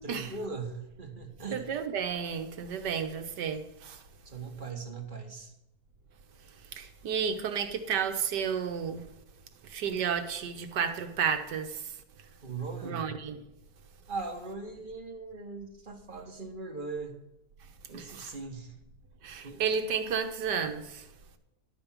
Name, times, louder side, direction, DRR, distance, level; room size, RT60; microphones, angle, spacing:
voice 1, 0.0-1.7 4.2-5.5 12.4-13.1 14.1-17.2 17.9-18.7 19.4-19.6, right 4 dB, 30° right, 1.3 m, -39 dB
voice 2, 1.5-4.0 6.7-9.0 9.7-11.8 12.8-13.4 17.9-18.3 19.2-21.0, right 7 dB, 80° right, 1.6 m, -32 dB
11.5 x 5.3 x 7.2 m
omnidirectional pair, 1.8 m